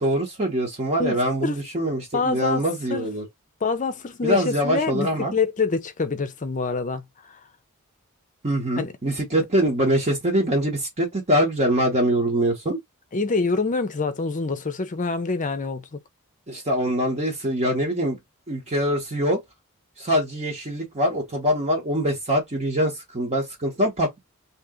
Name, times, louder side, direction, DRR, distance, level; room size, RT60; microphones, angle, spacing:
voice 1, 0.0-3.2 4.2-5.3 8.4-12.8 16.5-18.2 18.5-19.4 20.0-24.2, equal, 30° right, 0.9 m, -23 dB
voice 2, 1.0-1.6 2.1-2.6 2.9-3.1 3.6-7.0 8.8-8.9 13.1-16.0, left 4 dB, 35° left, 0.6 m, -26 dB
2.9 x 2.9 x 3.6 m
head